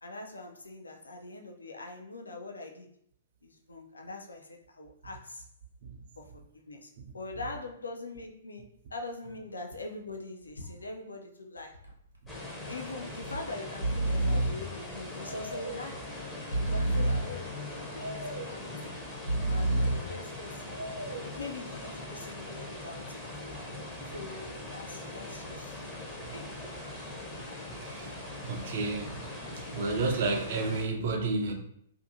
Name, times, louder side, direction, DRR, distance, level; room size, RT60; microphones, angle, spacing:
voice 1, 0.0-2.9 3.4-5.5 6.2-11.8 12.7-16.1 16.6-18.9 19.5-20.8 21.1-23.3 24.0-26.5, left 2 dB, 75° left, 3 dB, 0.4 m, -43 dB
Breathing, 11.6-11.9 12.2-12.3 13.2-13.4 13.7-14.7 15.3-15.9 16.4-17.4 18.0-18.6 19.1-20.1 20.7-21.3, right 1 dB, 90° right, 0.6 m, -30 dB
sound 1, 12.3-30.8, left 2 dB, 10° left, 0.6 m, -41 dB
Bowed string instrument, 15.9-20.7, left 5 dB, 45° left, 0.7 m, -50 dB
voice 2, 27.8-28.1 28.4-29.3 29.7-31.5, right 3 dB, 50° right, 3 dB, 0.4 m, -31 dB
2.6 x 2.4 x 2.6 m, 0.70 s
figure-of-eight pair, 115°, 0 cm